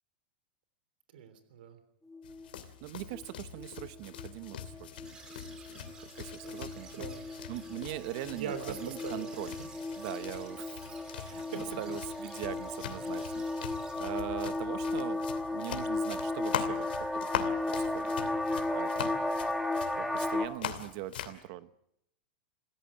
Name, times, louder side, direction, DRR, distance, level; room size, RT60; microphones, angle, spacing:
voice 1, 1.1-1.8 6.4-6.6 6.9-7.2 8.3-9.7 11.5-11.6 18.2-18.6 19.9-20.2, right 8 dB, 70° right, 11 dB, 3.3 m, -42 dB
sound 1, 2.1-2.6 3.1-3.3 3.6-3.9 4.2-20.5, left 2 dB, ahead, 1.5 m, -35 dB
sound 2, 2.2-21.4, left 10 dB, 85° left, 2.7 m, -42 dB
voice 2, 2.8-5.2 5.4-7.0 7.5-8.5 8.8-9.5 10.0-10.8 11.1-11.4 11.8-16.9 17.1-18.1 18.7-19.1 20.0-21.7, right 15 dB, 40° right, 14 dB, 0.8 m, -42 dB
sound 3, 5.0-14.0, right 4 dB, 15° right, 3.1 m, -54 dB
27.0 x 16.0 x 8.7 m, 0.79 s
supercardioid pair, 175°, 5 cm